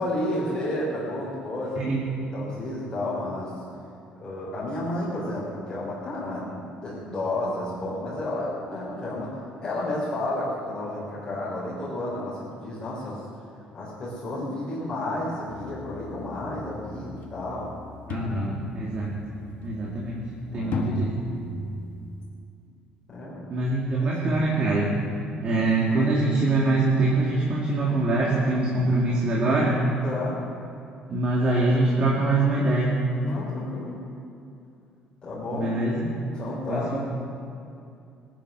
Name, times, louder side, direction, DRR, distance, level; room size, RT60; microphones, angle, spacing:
voice 1, 0.0-1.9 2.3-3.6 4.2-9.4 9.6-13.2 13.7-17.7 20.5-20.9 23.1-23.5 23.9-24.4 30.0-30.4 33.2-34.0 35.2-35.7 36.3-37.0, left 1 dB, 30° left, -8 dB, 4.1 m, -31 dB
sound 1, 15.5-22.3, left 1 dB, 65° left, 1.8 m, -36 dB
voice 2, 18.1-19.1 19.6-20.2 20.5-21.1 23.5-24.9 25.4-29.8 31.1-32.9 35.5-36.1 36.7-37.0, right 2 dB, 40° right, -4 dB, 2.2 m, -24 dB
18.5 x 10.5 x 6.2 m, 2.6 s
cardioid pair, 145°, 3 cm